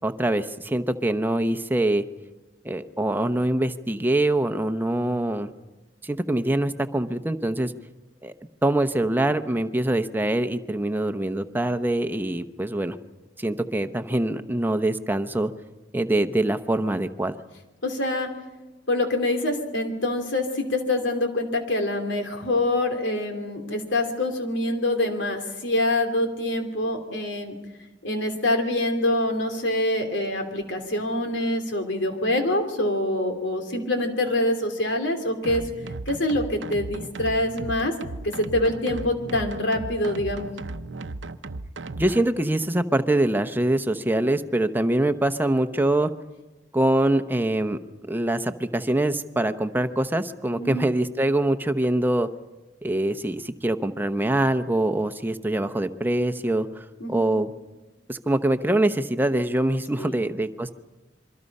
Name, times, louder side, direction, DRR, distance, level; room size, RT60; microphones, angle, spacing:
voice 1, 0.0-2.0 2.6-5.5 6.0-7.7 8.2-8.3 8.6-13.0 13.4-15.5 15.9-17.3 42.0-46.1 46.7-47.8 48.1-52.3 52.8-57.5 58.1-60.7, right 1 dB, 10° right, 9 dB, 0.8 m, -24 dB
voice 2, 17.8-18.3 18.9-27.5 28.0-35.6 36.1-37.9 38.2-40.5 50.6-50.8 57.0-57.3 60.0-60.2, left 1 dB, 85° left, 5 dB, 3.1 m, -25 dB
sound 1, 35.4-42.2, right 2 dB, 90° right, 0.8 m, -36 dB
27.0 x 23.0 x 5.5 m, 1.1 s
head